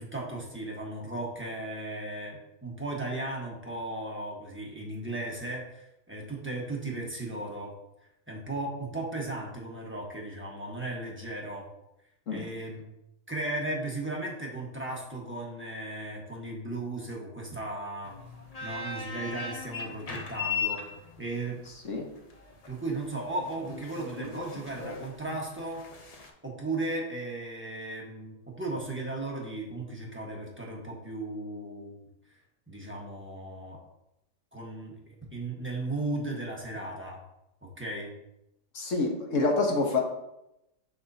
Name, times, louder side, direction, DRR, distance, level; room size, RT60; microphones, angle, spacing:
voice 1, 0.0-7.7 8.3-11.7 12.3-12.8 13.3-18.1 18.6-20.8 21.2-21.6 22.7-25.8 26.4-32.0 32.7-33.8 34.5-37.2 37.6-38.1, right 2 dB, 10° right, -3 dB, 1.0 m, -36 dB
sound 1, 18.0-26.3, left 4 dB, 75° left, 0.3 m, -38 dB
voice 2, 38.7-40.0, left 3 dB, 55° left, 1 dB, 1.3 m, -27 dB
6.5 x 6.0 x 2.7 m, 0.87 s
omnidirectional pair, 1.7 m